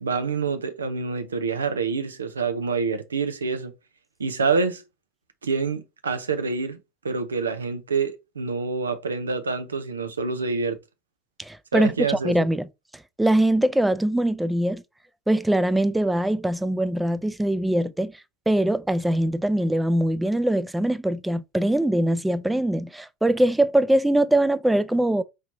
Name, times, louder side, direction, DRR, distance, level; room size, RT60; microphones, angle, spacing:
voice 1, 0.0-3.7 4.2-4.8 5.4-6.8 7.0-10.8 11.7-12.4, right 4 dB, 80° right, 0.6 m, -27 dB
voice 2, 11.4-12.7 13.2-14.8 15.3-18.1 18.5-25.2, right 1 dB, 5° right, 0.4 m, -22 dB
4.7 x 3.0 x 2.6 m
figure-of-eight pair, 75°, 0 cm